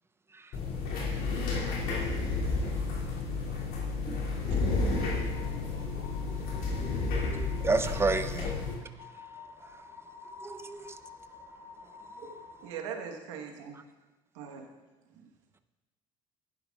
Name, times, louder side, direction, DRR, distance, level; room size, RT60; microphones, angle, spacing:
sound 1, 0.5-8.7, left 3 dB, 75° left, 2.7 m, -31 dB
voice 1, 3.9-5.1 5.5-5.7 7.3-7.7 15.1-15.2, right 5 dB, 60° right, 1.5 m, -48 dB
sound 2, 4.7-12.7, left 4 dB, 90° left, 3.5 m, -50 dB
voice 2, 6.5-8.5 10.4-10.9, right 3 dB, 15° right, 0.6 m, -32 dB
voice 3, 12.6-13.8 14.3-14.7, right 7 dB, 90° right, 1.2 m, -40 dB
15.5 x 10.5 x 2.4 m
supercardioid pair, 70°, 15 cm